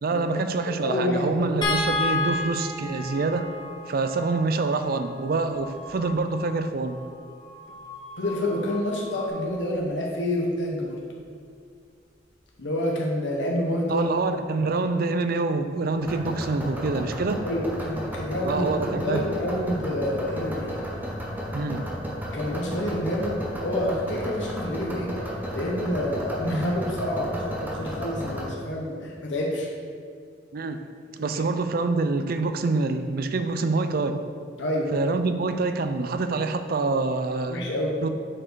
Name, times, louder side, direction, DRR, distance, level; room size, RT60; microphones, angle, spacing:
voice 1, 0.0-3.5 3.9-7.0 13.9-17.4 18.4-19.3 21.5-21.9 30.5-30.8 31.2-34.2 34.9-37.6 38.0-38.1, right 3 dB, 55° right, 9 dB, 0.4 m, -26 dB
voice 2, 0.7-1.5 8.2-11.0 12.6-14.4 17.4-20.8 22.3-29.7 31.2-31.4 34.6-34.9 37.5-38.0, left 1 dB, 85° left, -1 dB, 1.0 m, -28 dB
sound 1, 1.6-7.9 9.5-9.6 10.0-10.1, left 2 dB, 25° left, 1.3 m, -32 dB
sound 2, 2.6-9.3, left 3 dB, 55° left, 1.7 m, -45 dB
sound 3, 16.0-28.5, equal, 10° right, 1.0 m, -33 dB
7.6 x 4.6 x 4.6 m, 2.1 s
head